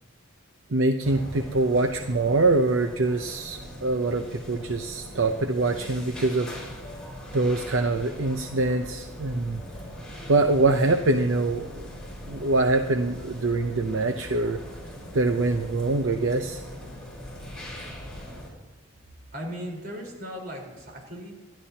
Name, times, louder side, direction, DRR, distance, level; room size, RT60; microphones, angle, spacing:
voice 1, 0.7-6.5 7.3-9.6 10.3-11.9 12.2-14.6 15.1-16.6, right 2 dB, 75° right, 6 dB, 0.7 m, -24 dB
sound 1, 1.0-18.5, equal, 5° left, 5.0 m, -41 dB
voice 2, 19.3-21.3, equal, 50° right, 0 dB, 4.1 m, -37 dB
28.0 x 12.0 x 2.9 m, 1.2 s
head